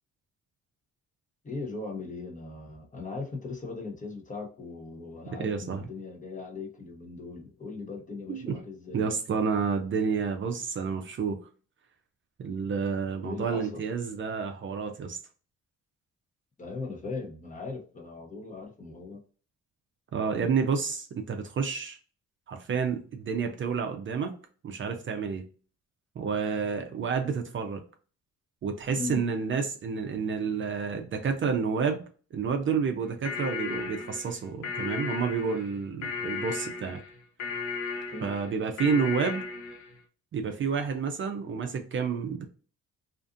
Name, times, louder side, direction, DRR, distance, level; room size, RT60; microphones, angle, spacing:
voice 1, 1.4-9.1 13.2-13.8 16.6-19.2 29.0-29.2 38.1-38.3, left 3 dB, 25° left, 2 dB, 0.8 m, -39 dB
voice 2, 5.4-5.9 8.3-8.6 8.9-11.4 12.4-15.2 20.1-22.0 22.5-24.3 24.6-25.4 26.2-27.8 28.6-32.0 32.3-37.0 38.2-39.4 40.3-42.5, right 5 dB, 40° right, 4 dB, 0.5 m, -29 dB
sound 1, 33.0-40.0, left 5 dB, 75° left, 0.7 m, -35 dB
2.5 x 2.4 x 2.5 m, 0.39 s
cardioid pair, 90°, 30 cm